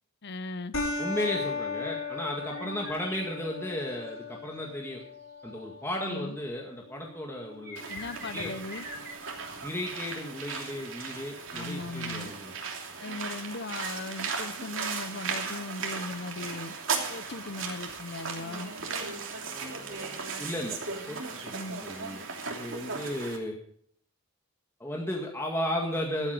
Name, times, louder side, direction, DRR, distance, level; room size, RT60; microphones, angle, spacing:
voice 1, 0.2-0.7 2.6-2.7 6.0-6.4 7.9-8.9 11.5-12.3 13.0-16.7 17.1-18.7 21.5-21.8, left 3 dB, 50° left, 14 dB, 0.8 m, -38 dB
sound 1, 0.7-9.7, left 3 dB, 70° left, 3.8 m, -38 dB
voice 2, 1.0-5.0 5.4-7.9 8.3-8.5 9.6-12.6 19.5-20.8 21.1-21.2 21.4-21.5 21.8-23.6 24.8-26.3, left 1 dB, 10° left, -1 dB, 1.9 m, -35 dB
sound 2, 2.5-4.2 5.5-5.6 7.6-9.1, equal, 15° right, 5.7 m, -43 dB
sound 3, 7.8-23.4, right 5 dB, 60° right, 3.0 m, -37 dB
13.5 x 12.5 x 5.1 m, 0.62 s
head